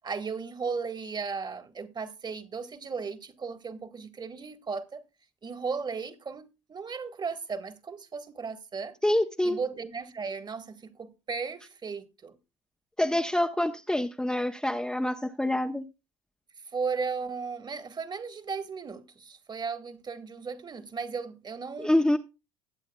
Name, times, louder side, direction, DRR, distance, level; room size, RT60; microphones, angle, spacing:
voice 1, 0.0-5.0 5.4-8.9 9.4-12.3 16.7-22.0, right 5 dB, 30° right, 1.6 m, -36 dB
voice 2, 9.0-9.6 13.0-15.8 21.8-22.2, left 1 dB, 5° left, 0.8 m, -26 dB
20.0 x 8.3 x 2.3 m
hypercardioid pair, 70°, 15 cm